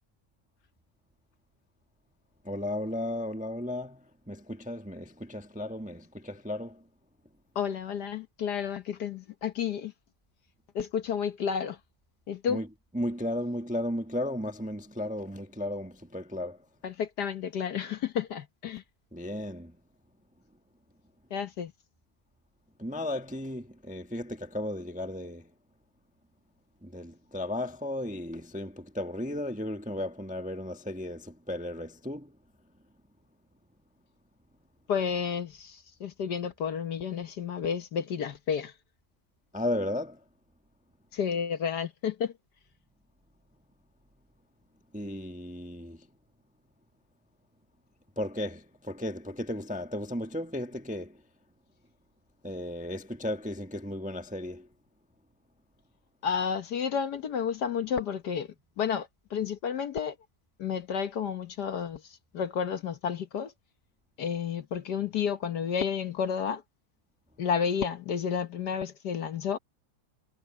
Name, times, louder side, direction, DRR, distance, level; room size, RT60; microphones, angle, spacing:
voice 1, 2.4-6.8 12.5-12.7 12.9-16.6 19.1-19.8 22.8-25.5 26.8-32.3 39.5-40.2 44.9-46.0 48.2-51.2 52.4-54.7, left 1 dB, 5° right, 0.8 m, -35 dB
voice 2, 7.5-9.9 10.7-11.8 12.3-12.6 16.8-18.8 21.3-21.7 34.9-38.7 41.1-42.3 56.2-58.5 58.8-60.1 60.6-62.0 62.3-63.5 64.2-66.6 67.4-69.6, left 7 dB, 60° left, 1.4 m, -31 dB
omnidirectional pair, 2.3 m